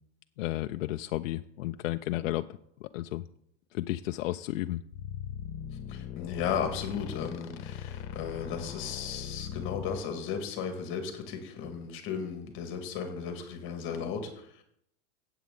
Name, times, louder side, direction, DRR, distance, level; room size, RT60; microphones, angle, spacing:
voice 1, 0.4-2.5 2.9-3.2 3.7-4.8, left 16 dB, 80° left, 8 dB, 0.6 m, -32 dB
sound 1, 4.9-10.0, left 9 dB, 45° left, 1.3 m, -40 dB
voice 2, 5.9-14.6, left 7 dB, 30° left, 5 dB, 1.9 m, -35 dB
15.5 x 8.0 x 3.8 m, 0.71 s
supercardioid pair, 170°, 38 cm